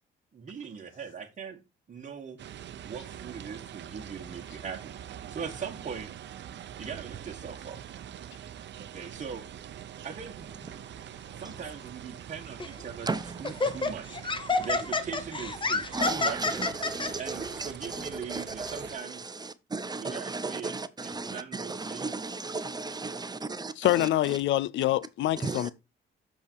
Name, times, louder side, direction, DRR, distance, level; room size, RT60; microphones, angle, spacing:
voice 1, 0.3-1.6 1.9-2.4 2.8-6.1 6.8-7.8 8.8-9.5 10.0-10.5 11.4-13.1 13.4-14.2 14.6-16.6 17.2-19.4 20.0-20.7 21.0-22.1, right 6 dB, 40° right, 1.5 m, -40 dB
sound 1, 2.4-19.0, right 10 dB, 65° right, 0.8 m, -44 dB
Laughter, 12.6-12.8 13.4-17.1, left 3 dB, 25° left, 0.9 m, -28 dB
voice 2, 13.0-13.9 14.6-14.9 15.9-24.4 25.4-25.7, right 3 dB, 20° right, 0.8 m, -36 dB
voice 3, 23.8-25.7, left 14 dB, 70° left, 0.4 m, -26 dB
7.0 x 5.4 x 4.5 m
cardioid pair, 90°, 20 cm